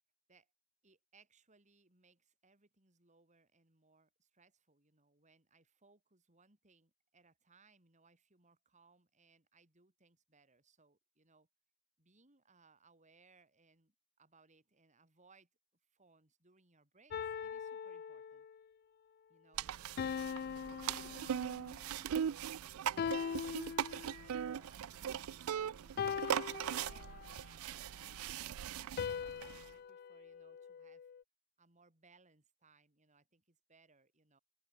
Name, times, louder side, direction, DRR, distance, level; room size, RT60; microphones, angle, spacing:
voice 1, 0.8-11.5 12.0-15.5 15.9-18.5 19.3-25.8 26.6-31.1 31.6-34.4, right 4 dB, 35° right, 3.7 m, -69 dB
sound 1, 17.1-18.6 20.0-21.8 23.0-24.4 26.0-27.4 29.0-31.2, left 7 dB, 45° left, 0.3 m, -41 dB
sound 2, 19.6-29.7, right 9 dB, 80° right, 0.4 m, -40 dB
open air
head